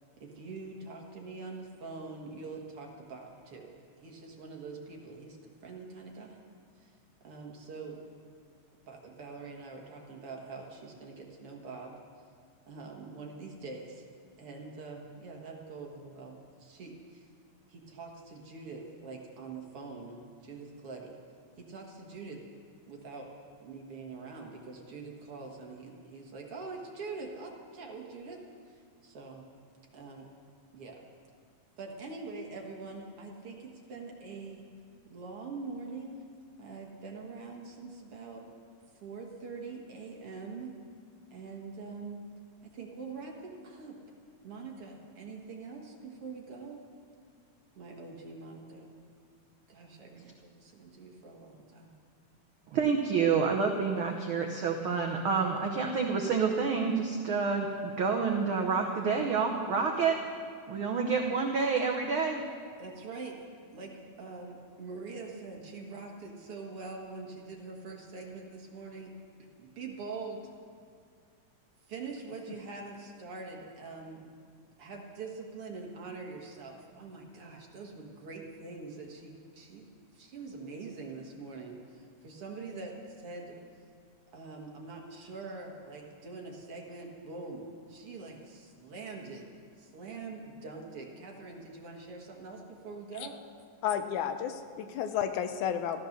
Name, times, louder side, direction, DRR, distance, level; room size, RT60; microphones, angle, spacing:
voice 1, 0.2-5.4 5.6-6.4 6.8-6.9 7.2-8.0 8.9-12.0 12.7-14.0 14.4-17.3 17.7-21.2 21.6-22.4 22.9-23.3 23.6-28.4 28.7-29.4 29.9-30.3 30.7-31.0 31.8-34.6 35.1-36.2 36.6-38.4 39.0-40.7 41.3-42.2 42.6-44.0 44.4-46.8 47.8-48.9 49.7-52.0 62.8-63.4 63.7-69.1 69.6-70.5 71.9-74.4 74.8-79.9 80.1-83.6 84.3-89.5 89.8-93.4, right 4 dB, 50° right, 0 dB, 2.2 m, -44 dB
voice 2, 52.7-60.2 60.7-62.5, right 5 dB, 75° right, 2 dB, 1.2 m, -28 dB
voice 3, 93.8-96.0, left 9 dB, 75° left, 8 dB, 2.0 m, -32 dB
14.5 x 13.0 x 6.6 m, 2.1 s
omnidirectional pair, 3.6 m